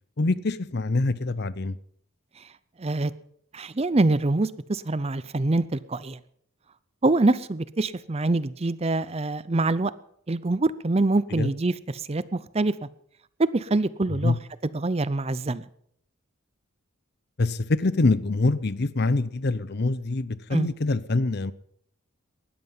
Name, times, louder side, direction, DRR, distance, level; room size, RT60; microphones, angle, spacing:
voice 1, 0.2-1.7 11.4-11.5 14.2-14.4 17.4-21.5, left 3 dB, 50° left, 0.7 m, -25 dB
voice 2, 2.8-3.1 3.5-6.2 7.0-9.9 10.3-12.7 13.4-14.4 14.6-15.7 20.5-20.7, right 2 dB, 30° right, 0.5 m, -25 dB
19.0 x 13.5 x 5.6 m
head